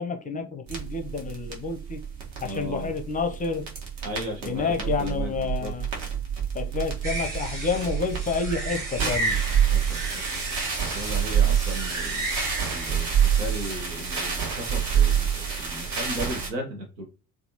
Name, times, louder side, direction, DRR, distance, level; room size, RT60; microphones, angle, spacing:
voice 1, 0.0-2.0 2.4-3.7 4.5-5.9 6.5-9.4 11.4-11.6, left 5 dB, 20° left, 0.5 m, -29 dB
sound 1, 0.7-16.5, right 8 dB, 60° right, 1.2 m, -27 dB
voice 2, 2.4-2.9 4.0-5.7 9.7-10.4 10.9-12.3 12.7-17.0, equal, 85° right, 1.0 m, -36 dB
sound 2, 7.0-13.7, right 2 dB, 40° right, 1.4 m, -33 dB
3.4 x 2.3 x 2.7 m
figure-of-eight pair, 50°, 49 cm